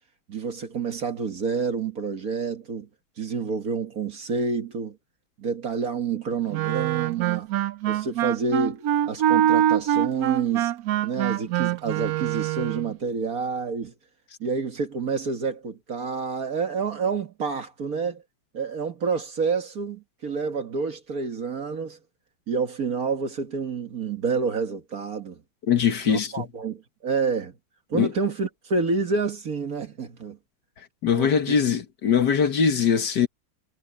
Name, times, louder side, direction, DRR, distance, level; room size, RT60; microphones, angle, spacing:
voice 1, 0.3-2.9 3.2-5.0 5.4-7.5 7.9-10.7 11.0-13.9 14.4-18.2 18.5-22.0 22.5-25.4 26.1-27.5 27.9-30.4 31.2-31.3, right 5 dB, 45° right, 1.8 m, -28 dB
Wind instrument woodwind instrument, 6.5-12.9, right 12 dB, 85° right, 0.8 m, -24 dB
voice 2, 25.7-26.5 27.9-28.1 31.0-33.3, left 7 dB, 60° left, 1.7 m, -22 dB
omnidirectional pair, 2.3 m